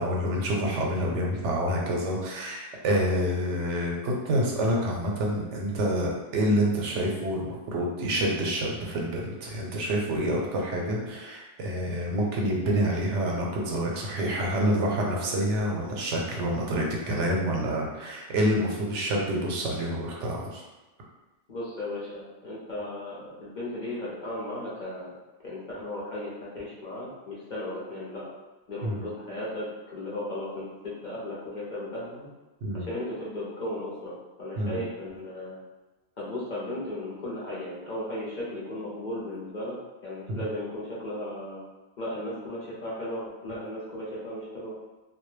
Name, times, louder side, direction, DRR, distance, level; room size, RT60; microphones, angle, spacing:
voice 1, 0.0-20.6 28.8-29.0 32.6-32.9 34.6-34.8 40.3-40.4, equal, 85° right, -1 dB, 0.9 m, -27 dB
voice 2, 21.5-25.2 25.4-28.3 28.7-32.3 32.7-35.6 36.2-41.6 42.0-44.7, left 1 dB, 50° left, -6 dB, 0.6 m, -36 dB
2.2 x 2.1 x 3.1 m, 1.1 s
omnidirectional pair, 1.2 m